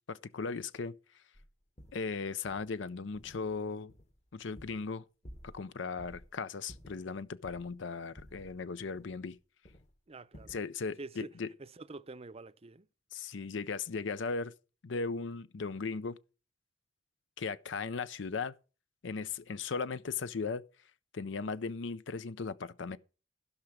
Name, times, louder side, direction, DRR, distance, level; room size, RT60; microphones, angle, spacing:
voice 1, 0.1-1.2 1.9-3.9 4.3-5.0 5.4-9.4 10.5-11.5 13.1-14.5 14.8-16.2 17.4-18.5 19.0-20.6 21.1-23.0, left 4 dB, 70° left, 0.5 m, -37 dB
sound 1, 1.3-1.5 1.8-2.1 2.5-2.7 3.1-3.6 3.9-5.0 5.2-5.7 6.0-6.3 6.7-7.8 8.2-9.4 9.7-9.9 10.3-10.7, equal, 40° left, 1.4 m, -54 dB
voice 2, 10.1-10.5 11.0-11.3 11.6-12.9, right 3 dB, 35° right, 0.6 m, -47 dB
15.5 x 5.9 x 6.4 m
head